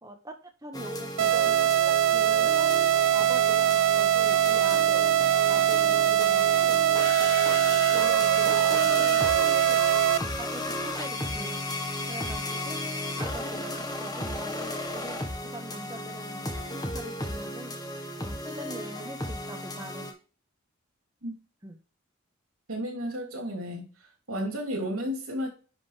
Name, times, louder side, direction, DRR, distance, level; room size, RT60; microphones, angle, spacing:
voice 1, 0.0-2.7 3.1-3.7 4.0-5.1 5.5-6.9 7.9-9.8 10.4-11.6 12.1-17.8 18.2-20.1 21.6-21.8, right 1 dB, 15° right, 1.5 m, -43 dB
sound 1, 0.7-20.1, left 1 dB, 15° left, 1.5 m, -34 dB
sound 2, 1.2-10.2, right 10 dB, 60° right, 0.4 m, -22 dB
voice 2, 22.7-23.9 24.3-25.5, equal, 85° right, 3.5 m, -32 dB
10.5 x 5.4 x 3.4 m
head